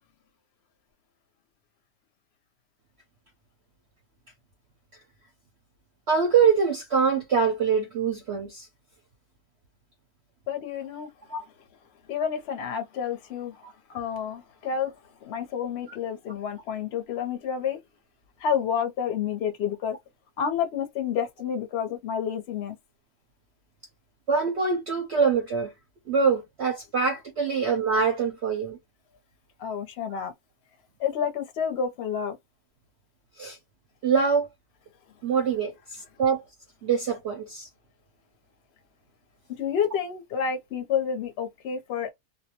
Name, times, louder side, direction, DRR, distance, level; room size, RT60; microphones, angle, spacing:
voice 1, 6.1-8.7 11.3-11.4 24.3-25.7 26.1-28.8 33.4-33.6 34.0-34.5 35.2-36.4 36.8-37.7, right 5 dB, 60° right, 0.7 m, -24 dB
voice 2, 10.5-11.1 12.1-13.6 13.9-14.9 15.2-17.8 18.4-20.0 20.4-22.8 29.6-30.3 31.0-32.4 39.6-42.1, left 7 dB, 55° left, 0.8 m, -29 dB
2.6 x 2.1 x 2.8 m
omnidirectional pair, 1.7 m